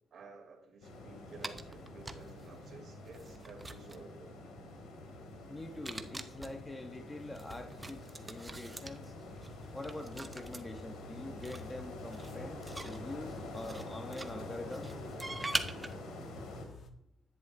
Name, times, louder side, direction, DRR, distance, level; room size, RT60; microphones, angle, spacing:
voice 1, 0.1-4.3, right 3 dB, 60° right, 2 dB, 3.0 m, -53 dB
sound 1, 0.8-16.6, left 2 dB, 85° left, 2.5 m, -47 dB
sound 2, 1.4-2.5 3.0-4.1 5.7-6.6 7.3-10.6 11.4-13.9 14.1-15.9, right 2 dB, 20° right, 0.8 m, -42 dB
voice 2, 5.5-9.1 9.7-14.9, left 2 dB, 15° left, 7 dB, 1.0 m, -45 dB
sound 3, 9.3-16.9, left 2 dB, 55° left, 1.3 m, -55 dB
10.5 x 9.7 x 2.7 m, 0.74 s
cardioid pair, 90°, 0 cm